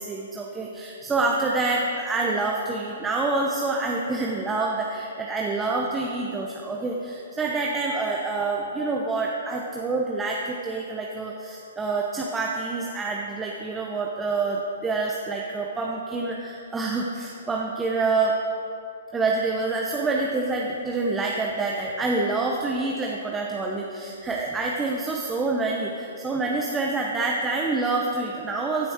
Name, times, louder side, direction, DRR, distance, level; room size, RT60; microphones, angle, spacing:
voice 1, 0.0-18.4 19.1-28.9, right 3 dB, 10° right, -1 dB, 0.9 m, -27 dB
15.5 x 8.5 x 4.5 m, 2.8 s
hypercardioid pair, 145°, 0 cm